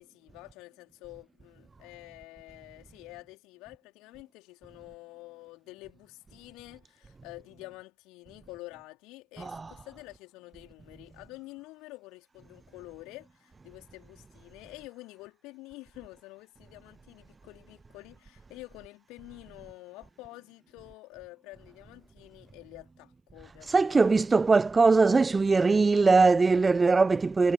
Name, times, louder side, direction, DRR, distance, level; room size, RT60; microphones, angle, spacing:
voice 1, 0.0-24.2 24.9-25.0, left 21 dB, 40° left, 4.5 m, -48 dB
voice 2, 9.4-9.7 23.7-27.5, right 4 dB, 10° right, 0.5 m, -21 dB
figure-of-eight pair, 90°, 0 cm